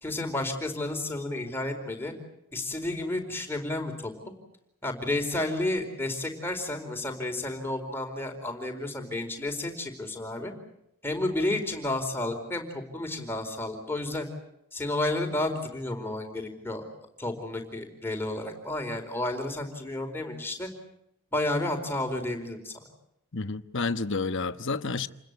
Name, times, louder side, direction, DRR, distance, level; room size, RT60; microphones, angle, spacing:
voice 1, 0.0-2.1 2.5-4.1 4.8-10.5 11.0-14.3 14.7-16.8 17.2-20.7 21.3-22.7, left 2 dB, 10° left, 4.5 m, -31 dB
voice 2, 23.3-25.1, left 3 dB, 55° left, 1.2 m, -30 dB
29.0 x 21.0 x 8.1 m
head